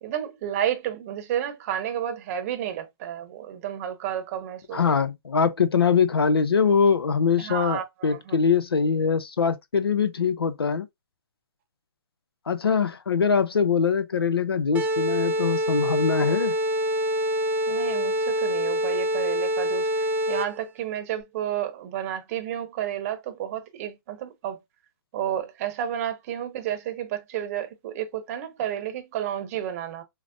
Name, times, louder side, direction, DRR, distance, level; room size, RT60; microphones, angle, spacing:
voice 1, 0.0-4.8 7.4-8.4 17.7-19.9 20.3-24.6 25.1-30.0, right 10 dB, 40° right, 0.8 m, -31 dB
voice 2, 4.7-10.9 12.5-16.5, left 6 dB, 85° left, 0.5 m, -23 dB
sound 1, 14.7-20.7, equal, 10° right, 0.5 m, -25 dB
4.7 x 2.0 x 2.5 m
hypercardioid pair, 130°, 12 cm